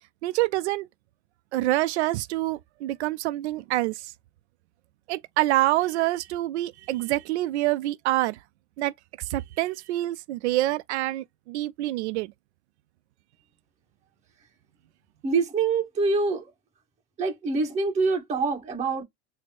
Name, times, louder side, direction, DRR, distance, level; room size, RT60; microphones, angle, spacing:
voice 1, 0.2-0.9 1.5-4.1 5.1-8.4 8.8-12.3, right 16 dB, 85° right, 0.5 m, -26 dB
voice 2, 15.2-16.5 17.2-19.0, right 4 dB, 20° right, 1.7 m, -25 dB
4.2 x 2.1 x 3.1 m
supercardioid pair, 160°, 33 cm